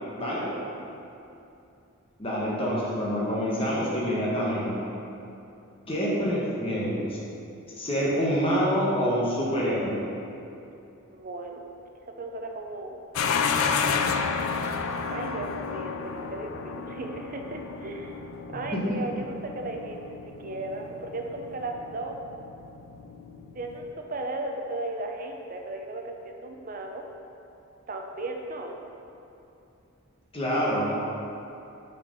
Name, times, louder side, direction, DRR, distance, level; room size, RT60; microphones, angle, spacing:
voice 1, 0.4-0.9 11.1-11.6 12.0-13.0 15.1-18.2 18.5-22.1 23.5-27.0 27.9-28.8, right 2 dB, 35° right, 3 dB, 0.6 m, -36 dB
voice 2, 2.2-4.9 5.9-7.2 7.8-10.0 18.7-19.0 30.3-30.9, equal, 25° left, -6 dB, 1.3 m, -26 dB
sound 1, 13.1-23.9, left 5 dB, 65° left, 0.4 m, -31 dB
6.1 x 4.8 x 5.2 m, 2.7 s
head